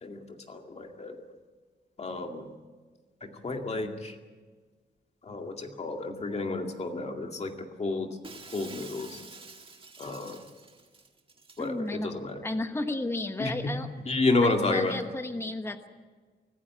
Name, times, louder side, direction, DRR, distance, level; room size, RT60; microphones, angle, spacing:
voice 1, 0.0-1.2 2.0-2.5 3.2-4.2 5.2-8.2 8.5-9.2 10.0-10.4 11.6-12.4 13.4-13.7 14.1-15.0, left 3 dB, 35° left, 3 dB, 2.2 m, -31 dB
Shatter, 8.2-11.7, right 4 dB, 30° right, 1.6 m, -48 dB
voice 2, 11.6-13.9 14.4-15.9, left 2 dB, 15° left, 7 dB, 1.2 m, -33 dB
25.5 x 14.5 x 8.7 m, 1.4 s
wide cardioid pair, 175°, 18 cm